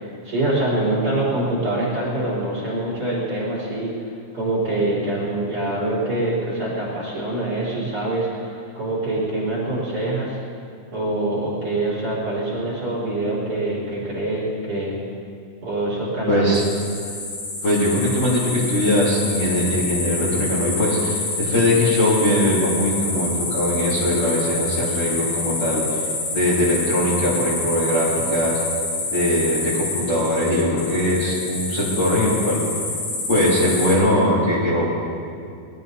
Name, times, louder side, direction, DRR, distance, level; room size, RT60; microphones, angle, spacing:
voice 1, 0.0-3.9 4.3-10.4 10.9-14.9 15.6-16.6, right 2 dB, 30° right, -8 dB, 4.2 m, -24 dB
voice 2, 16.3-16.6 17.6-28.6 29.1-32.6 33.3-34.8, left 1 dB, 30° left, -10 dB, 3.1 m, -21 dB
sound 1, 16.5-33.9, left 2 dB, 70° left, 5.2 m, -27 dB
21.0 x 13.0 x 4.2 m, 2.4 s
omnidirectional pair, 5.1 m